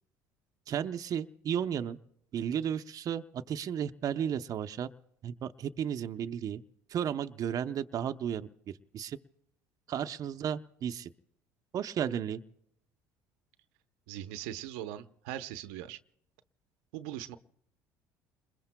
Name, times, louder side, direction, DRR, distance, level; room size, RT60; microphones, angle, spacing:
voice 1, 0.7-2.0 2.3-4.9 5.2-6.6 6.9-9.2 9.9-11.1 11.7-12.4, right 9 dB, 50° right, 8 dB, 0.7 m, -34 dB
voice 2, 14.1-16.0 16.9-17.4, right 12 dB, 85° right, 10 dB, 0.8 m, -40 dB
29.0 x 21.5 x 2.2 m, 0.75 s
supercardioid pair, 85°, 8 cm